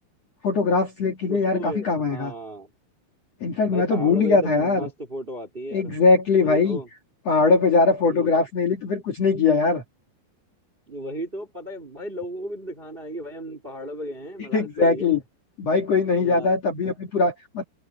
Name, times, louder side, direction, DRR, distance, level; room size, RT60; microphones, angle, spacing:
voice 1, 0.4-2.3 3.4-4.9 5.7-6.8 7.3-9.8 14.4-15.2 15.6-17.6, left 4 dB, 45° left, 2.5 m, -21 dB
voice 2, 1.3-2.7 3.6-5.9 6.3-6.9 8.1-8.4 10.9-15.1 16.2-16.6, right 1 dB, 15° right, 2.1 m, -34 dB
omnidirectional pair, 5.4 m